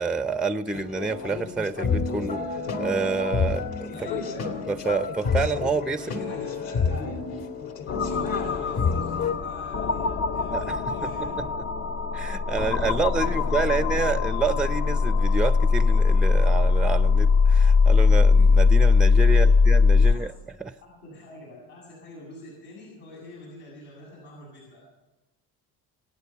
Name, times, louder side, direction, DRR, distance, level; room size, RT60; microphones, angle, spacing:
voice 1, 0.0-2.4 2.8-3.9 4.7-6.1 10.5-11.5 12.1-20.3 20.6-20.7, right 4 dB, ahead, 11 dB, 0.6 m, -28 dB
sound 1, 0.7-9.3, left 5 dB, 60° left, 2.4 m, -29 dB
voice 2, 3.9-4.5 5.9-7.1 8.0-11.4 12.6-13.5 13.8-14.1 19.2-19.5 20.0-20.4 20.8-24.8, left 2 dB, 80° left, -5 dB, 7.5 m, -43 dB
sound 2, 7.9-20.1, left 4 dB, 35° left, 0.7 m, -21 dB
26.0 x 9.2 x 5.8 m, 1.1 s
cardioid pair, 105°, 39 cm